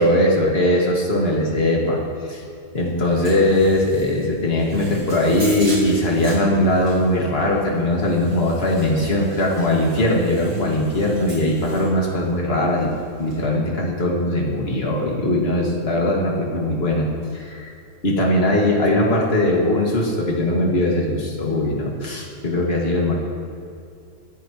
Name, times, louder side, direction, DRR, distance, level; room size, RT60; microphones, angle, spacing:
voice 1, 0.0-2.0 2.3-2.4 2.7-12.9 13.2-17.7 18.0-23.1, left 1 dB, 35° left, -2 dB, 2.2 m, -20 dB
sound 1, 2.7-13.5, right 2 dB, 65° right, 4.8 m, -40 dB
25.0 x 10.5 x 3.1 m, 2.4 s
omnidirectional pair, 1.9 m